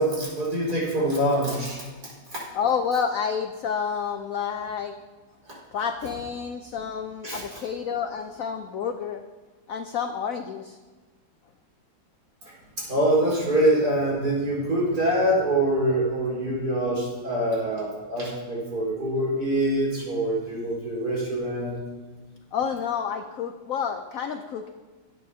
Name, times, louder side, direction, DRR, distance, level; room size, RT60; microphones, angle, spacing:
voice 1, 0.0-2.5 7.2-7.6 12.4-21.8, right 1 dB, 50° right, -6 dB, 5.1 m, -25 dB
voice 2, 2.5-4.9 5.7-9.2 9.7-10.8 22.5-24.7, left 7 dB, 80° left, 7 dB, 0.7 m, -29 dB
18.0 x 9.1 x 2.8 m, 1.3 s
omnidirectional pair, 2.1 m